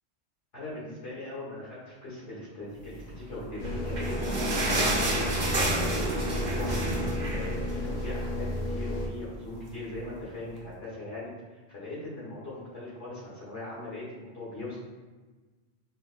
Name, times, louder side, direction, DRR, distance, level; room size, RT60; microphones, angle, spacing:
voice 1, 0.5-7.0 7.3-14.8, left 2 dB, 80° left, -8 dB, 1.8 m, -40 dB
sound 1, 3.5-8.3 8.6-8.7 9.0-9.2 9.8-9.9, right 1 dB, 45° right, 0.7 m, -30 dB
sound 2, 3.6-9.1, left 1 dB, 50° left, 0.5 m, -32 dB
4.9 x 2.1 x 2.5 m, 1.3 s
omnidirectional pair, 1.2 m